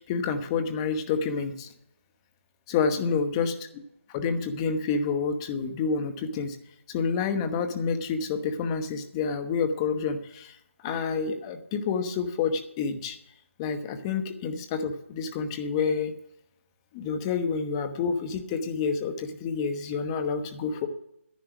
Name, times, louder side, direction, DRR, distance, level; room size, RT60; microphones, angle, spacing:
voice 1, 0.0-1.7 2.7-3.8 4.1-6.6 6.9-10.6 10.8-13.2 13.6-16.1 16.9-20.9, left 5 dB, 20° left, 8 dB, 1.0 m, -28 dB
10.5 x 10.5 x 6.0 m, 0.77 s
figure-of-eight pair, 155°, 7 cm